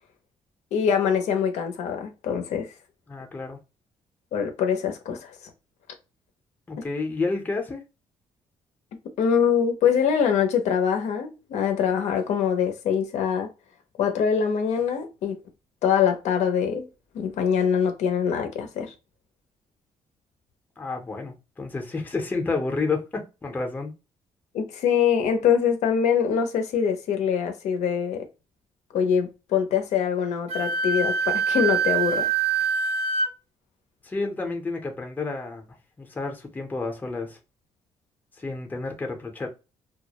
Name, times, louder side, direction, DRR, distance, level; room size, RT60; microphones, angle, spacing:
voice 1, 0.7-2.7 4.3-5.5 9.2-13.5 14.0-15.4 15.8-16.9 17.1-18.9 24.5-28.3 28.9-32.3, left 7 dB, 85° left, 0.5 m, -24 dB
voice 2, 3.1-3.6 6.7-7.8 20.8-23.9 34.0-35.6 36.0-37.4 38.4-39.5, left 3 dB, 15° left, 0.5 m, -30 dB
Wind instrument woodwind instrument, 30.5-33.3, right 5 dB, 60° right, 0.5 m, -24 dB
2.2 x 2.0 x 2.8 m
cardioid pair, 135°, 12 cm